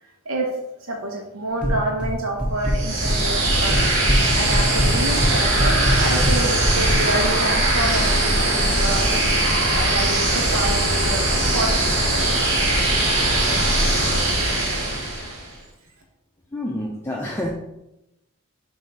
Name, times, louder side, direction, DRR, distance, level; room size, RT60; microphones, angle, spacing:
voice 1, 0.8-9.4 9.7-12.3 12.8-13.2 14.1-14.3, right 1 dB, 80° right, 0 dB, 1.0 m, -28 dB
sound 1, 1.6-2.1 2.4-3.2 3.4-4.2 4.5-7.0, equal, 5° right, 1.0 m, -21 dB
sound 2, 2.7-15.5, right 1 dB, 55° right, 1.9 m, -20 dB
voice 2, 16.5-17.5, left 1 dB, 10° left, -2 dB, 0.5 m, -28 dB
7.5 x 2.7 x 4.7 m, 0.90 s
head